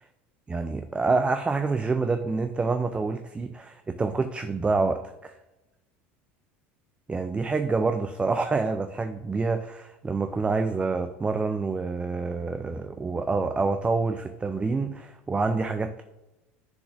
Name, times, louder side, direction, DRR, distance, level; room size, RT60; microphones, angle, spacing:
voice 1, 0.5-5.3 7.1-16.0, right 4 dB, 15° right, 7 dB, 0.3 m, -27 dB
10.0 x 3.8 x 2.5 m, 1.0 s
hypercardioid pair, 85°, 7 cm